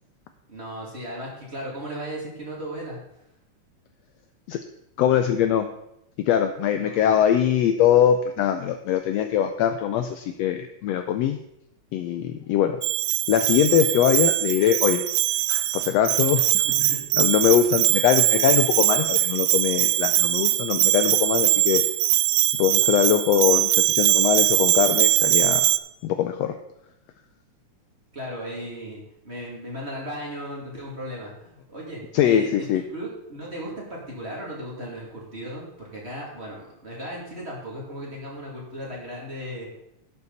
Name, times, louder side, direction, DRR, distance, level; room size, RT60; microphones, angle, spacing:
voice 1, 0.5-3.0 6.7-7.1 16.6-17.1 28.1-32.7 32.9-39.7, equal, 20° right, -3 dB, 2.5 m, -36 dB
voice 2, 5.0-5.7 6.2-11.4 11.9-12.8 13.3-15.0 15.5-21.8 22.6-25.7 26.0-26.5 32.1-32.8, left 10 dB, 85° left, 8 dB, 1.5 m, -22 dB
Bell, 12.8-25.8, right 16 dB, 90° right, 2.1 m, -21 dB
11.5 x 8.3 x 4.1 m, 0.81 s
omnidirectional pair, 3.5 m